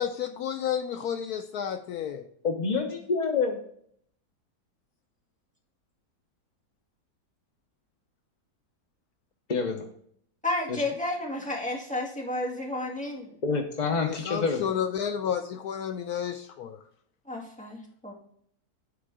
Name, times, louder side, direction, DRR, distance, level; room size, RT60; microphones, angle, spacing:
voice 1, 0.0-2.2 14.0-16.8, left 8 dB, 75° left, 8 dB, 1.1 m, -31 dB
voice 2, 2.4-3.6 9.5-9.8 10.7-10.8 13.4-14.6, left 4 dB, 45° left, 4 dB, 0.5 m, -27 dB
voice 3, 10.4-13.4 17.3-18.1, left 2 dB, 5° left, -4 dB, 2.2 m, -32 dB
10.0 x 4.4 x 4.9 m, 0.65 s
omnidirectional pair, 1.7 m